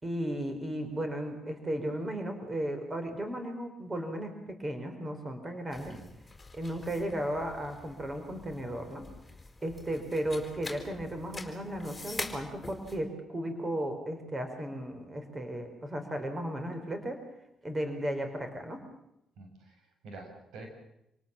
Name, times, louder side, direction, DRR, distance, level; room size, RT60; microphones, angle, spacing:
voice 1, 0.0-6.0 6.5-9.1 9.6-17.2 17.6-18.8, right 1 dB, 25° right, 6 dB, 5.1 m, -35 dB
sound 1, 5.7-13.0, left 3 dB, 15° left, 4.9 m, -45 dB
voice 2, 19.4-20.7, right 2 dB, 80° right, 4 dB, 6.7 m, -47 dB
27.5 x 18.5 x 7.6 m, 0.82 s
cardioid pair, 90°, 0 cm